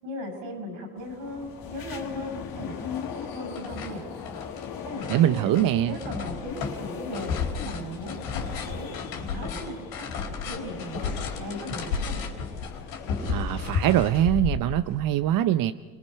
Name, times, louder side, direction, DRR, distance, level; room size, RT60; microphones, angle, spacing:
voice 1, 0.0-4.0 4.8-5.5 5.9-8.9 9.2-10.0 10.4-12.3, left 1 dB, 85° right, 4 dB, 6.2 m, -37 dB
sound 1, 1.0-14.3, left 7 dB, 60° left, 2.1 m, -40 dB
sound 2, 1.9-2.0 2.3-3.1 3.3-15.0, left 5 dB, 75° left, 4.0 m, -33 dB
voice 2, 5.1-5.9 13.3-15.7, right 12 dB, 55° right, 11 dB, 0.7 m, -23 dB
30.0 x 20.5 x 5.6 m, 1.5 s
supercardioid pair, 75°, 40 cm